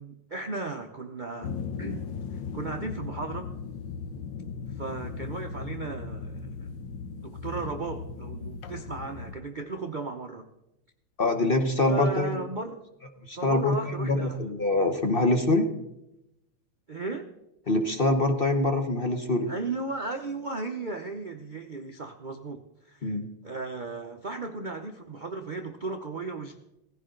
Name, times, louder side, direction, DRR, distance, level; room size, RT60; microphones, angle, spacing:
voice 1, 0.0-3.5 4.8-6.7 7.2-10.5 11.8-12.8 13.3-14.4 16.9-17.3 19.5-23.2 23.4-26.6, right 3 dB, 70° right, 5 dB, 0.4 m, -35 dB
sound 1, 1.4-9.3, left 5 dB, 65° left, 1.5 m, -37 dB
voice 2, 11.2-12.4 13.2-15.7 17.7-19.5 23.0-23.3, left 2 dB, 35° left, 5 dB, 0.9 m, -24 dB
18.0 x 15.0 x 3.8 m, 0.87 s
omnidirectional pair, 2.3 m